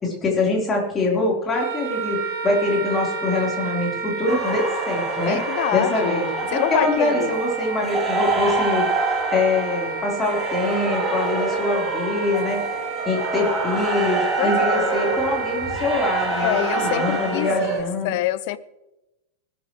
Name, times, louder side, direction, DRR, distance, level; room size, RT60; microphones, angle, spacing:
voice 1, 0.0-5.4 5.7-18.2, left 3 dB, 20° left, 4.3 m, -24 dB
Wind instrument woodwind instrument, 1.5-17.6, right 4 dB, 50° right, 3.6 m, -30 dB
sound 1, 4.3-17.8, right 3 dB, 15° right, 3.4 m, -27 dB
voice 2, 5.2-6.2 6.5-7.4 14.4-15.0 16.4-18.6, left 15 dB, 50° left, 0.6 m, -26 dB
20.0 x 11.5 x 3.3 m
figure-of-eight pair, 90°, 0 cm